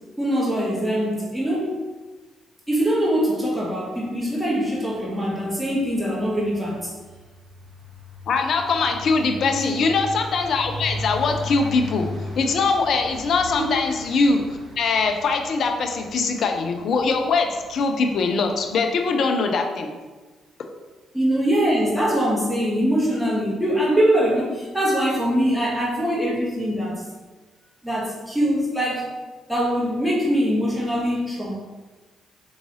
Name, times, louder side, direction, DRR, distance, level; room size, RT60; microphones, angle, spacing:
voice 1, 0.2-1.8 2.7-6.9 9.4-9.7 13.6-13.7 21.1-27.0 27.8-29.1 29.5-31.5, equal, 5° right, -5 dB, 1.1 m, -23 dB
sound 1, 5.0-5.3 5.5-18.7, left 2 dB, 35° right, 1.1 m, -37 dB
voice 2, 8.3-12.1 12.4-14.4 14.8-19.9, left 4 dB, 55° left, 4 dB, 0.5 m, -22 dB
4.7 x 2.6 x 3.0 m, 1.3 s
figure-of-eight pair, 40°, 0 cm